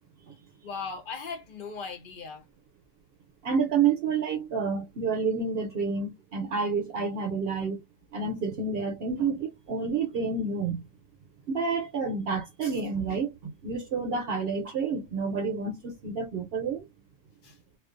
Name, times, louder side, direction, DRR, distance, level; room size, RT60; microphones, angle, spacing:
voice 1, 0.6-2.5 17.4-17.6, left 5 dB, 55° left, 0.8 m, -38 dB
voice 2, 3.4-7.8 8.1-10.8 11.5-16.9, right 5 dB, 65° right, 0.8 m, -29 dB
2.3 x 2.3 x 2.4 m
omnidirectional pair, 1.2 m